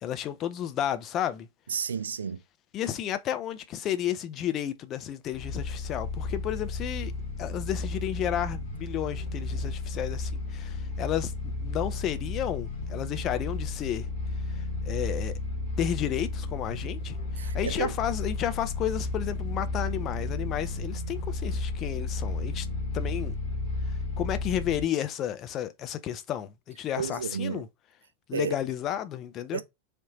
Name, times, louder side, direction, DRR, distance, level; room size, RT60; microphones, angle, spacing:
voice 1, 0.0-1.5 2.7-7.1 7.4-14.1 14.5-15.4 15.8-22.7 22.9-23.4 24.2-27.7 28.3-29.6, left 11 dB, 35° left, 0.5 m, -32 dB
voice 2, 1.7-2.4 17.4-17.9 27.0-27.6 28.3-28.6 29.5-29.6, right 7 dB, 70° right, 0.4 m, -31 dB
sound 1, 5.3-24.8, left 3 dB, 50° left, 1.4 m, -33 dB
3.4 x 2.7 x 2.9 m
figure-of-eight pair, 90°, 0 cm